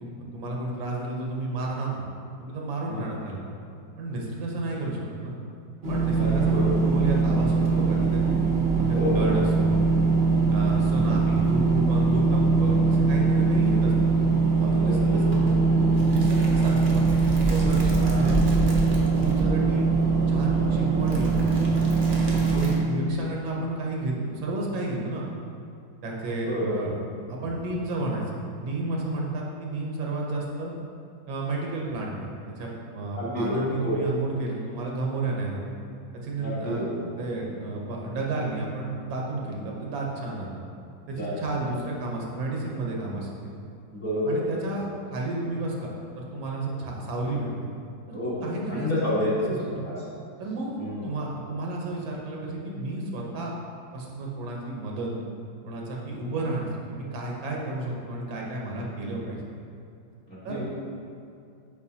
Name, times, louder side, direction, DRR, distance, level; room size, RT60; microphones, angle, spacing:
voice 1, 0.0-2.1 2.4-3.4 4.0-5.4 5.8-8.3 8.9-9.8 10.5-14.1 14.6-15.2 15.5-17.1 17.5-18.4 19.1-19.9 20.3-21.8 22.5-25.3 26.0-26.9 27.3-30.7 31.3-32.1 32.6-32.7 32.9-35.6 36.2-36.9 37.2-40.5 41.1-43.3 44.3-47.7 48.1-49.9 50.4-53.5 53.9-55.1 55.6-59.4 60.4-60.6, right 2 dB, 85° right, -2 dB, 1.7 m, -31 dB
sound 1, 5.8-22.7, right 4 dB, 55° right, 0.5 m, -22 dB
voice 2, 6.1-6.8 8.9-9.3 10.7-11.0 12.7-13.1 14.8-15.2 18.0-18.4 26.4-26.8 33.1-34.0 36.4-37.0 41.0-41.7 43.9-44.7 48.1-49.9 50.8-51.1 60.3-60.6, left 1 dB, 40° left, -9 dB, 1.7 m, -30 dB
7.2 x 4.8 x 2.8 m, 2.5 s
omnidirectional pair, 2.1 m